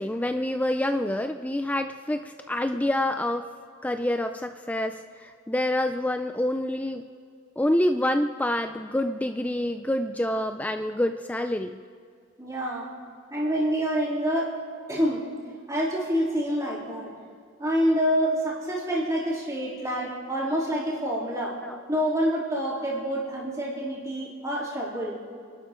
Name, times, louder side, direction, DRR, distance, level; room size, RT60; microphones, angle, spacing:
voice 1, 0.0-3.5 3.8-7.0 7.6-11.8 21.6-21.8, left 1 dB, 5° left, 7 dB, 0.4 m, -27 dB
voice 2, 12.4-12.9 13.3-14.5 14.9-15.2 15.7-17.1 17.6-21.6 21.9-25.2, equal, 15° right, -6 dB, 3.7 m, -27 dB
29.5 x 12.0 x 3.9 m, 2.2 s
head